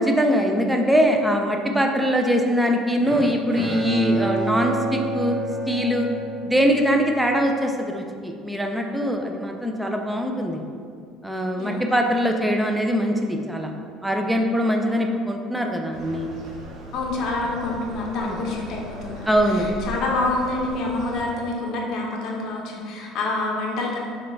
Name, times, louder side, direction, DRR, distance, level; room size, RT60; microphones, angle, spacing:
voice 1, 0.0-5.4 5.7-6.1 6.4-10.6 11.2-13.7 14.0-16.3 18.3-18.4 19.3-19.7, equal, 5° right, 2 dB, 0.3 m, -22 dB
Bowed string instrument, 3.0-7.3, right 2 dB, 75° right, 1.2 m, -29 dB
sound 1, 15.9-21.2, right 1 dB, 40° right, 0.8 m, -38 dB
voice 2, 16.9-24.0, left 2 dB, 45° left, -1 dB, 0.6 m, -27 dB
5.4 x 2.2 x 4.0 m, 2.2 s
cardioid pair, 165°, 0 cm